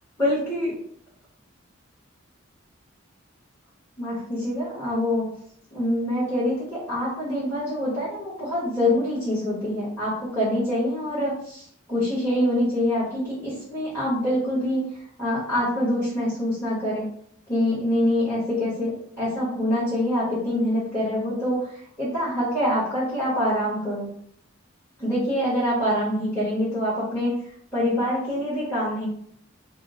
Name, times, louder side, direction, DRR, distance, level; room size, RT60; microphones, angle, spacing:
voice 1, 0.2-0.7 4.0-5.2 5.7-11.6 11.9-14.8 15.2-17.0 17.5-24.1 25.0-27.3 27.7-29.1, left 1 dB, 10° left, -12 dB, 1.2 m, -25 dB
2.8 x 2.1 x 3.6 m, 0.64 s
head